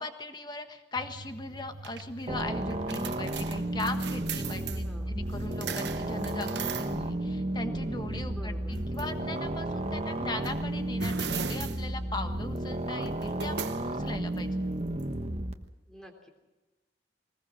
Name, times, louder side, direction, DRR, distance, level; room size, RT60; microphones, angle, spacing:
voice 1, 0.0-14.5, left 2 dB, 25° left, 7 dB, 1.4 m, -39 dB
sound 1, 1.0-15.7, right 6 dB, 75° right, 1.0 m, -42 dB
sound 2, 2.3-15.5, right 1 dB, 35° right, 1.2 m, -33 dB
voice 2, 4.6-5.2 8.3-8.9 15.9-16.3, equal, 5° left, 2 dB, 3.3 m, -49 dB
21.5 x 20.0 x 6.3 m, 1.1 s
head